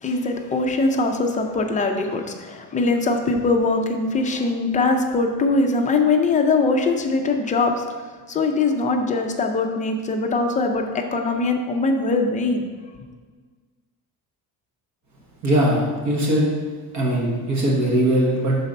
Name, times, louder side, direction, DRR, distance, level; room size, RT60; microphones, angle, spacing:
voice 1, 0.0-7.8 8.3-12.6, left 3 dB, 20° left, 3 dB, 0.4 m, -22 dB
voice 2, 15.4-16.5 16.9-18.6, right 1 dB, 45° right, -3 dB, 1.2 m, -20 dB
5.5 x 4.0 x 5.1 m, 1.5 s
cardioid pair, 160°, 39 cm